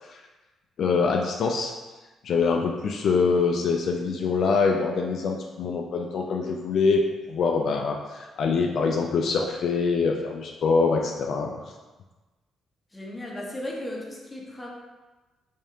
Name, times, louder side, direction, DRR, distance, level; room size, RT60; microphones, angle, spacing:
voice 1, 0.8-1.7 2.2-7.0 7.3-11.6, left 4 dB, 65° left, 1 dB, 0.3 m, -24 dB
voice 2, 12.9-14.7, left 1 dB, 15° left, -2 dB, 0.8 m, -35 dB
3.5 x 3.3 x 2.7 m, 1.2 s
cardioid pair, 90°, 0 cm